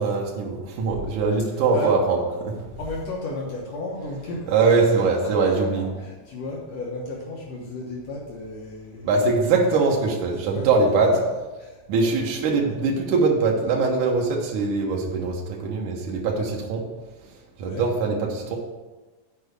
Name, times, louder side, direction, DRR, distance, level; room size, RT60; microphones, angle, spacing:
voice 1, 0.0-2.7 4.5-5.9 9.0-11.1 11.9-16.8 17.6-18.6, right 4 dB, 90° right, -1 dB, 2.5 m, -22 dB
voice 2, 2.8-9.2 9.7-9.8 10.5-10.7 11.6-12.2 17.6-17.9, left 2 dB, 65° left, -3 dB, 2.3 m, -34 dB
8.5 x 4.8 x 6.8 m, 1.2 s
omnidirectional pair, 3.4 m